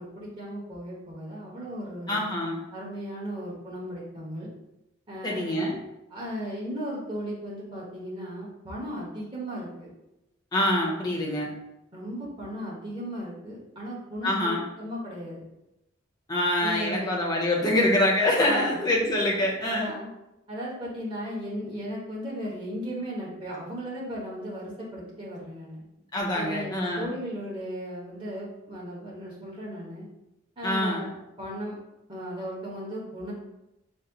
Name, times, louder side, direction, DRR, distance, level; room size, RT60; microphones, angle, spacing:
voice 1, 0.0-2.2 2.7-4.5 5.1-5.6 6.1-9.9 11.9-15.4 16.6-17.1 18.4-18.8 19.6-20.1 20.5-25.8 26.3-30.1 30.6-31.8 32.1-33.3, equal, 25° right, -6 dB, 1.2 m, -36 dB
voice 2, 2.1-2.6 5.2-5.8 10.5-11.5 14.2-14.6 16.3-19.9 26.1-27.1 30.6-31.1, left 1 dB, 20° left, -2 dB, 0.7 m, -25 dB
4.2 x 2.0 x 3.9 m, 0.90 s
head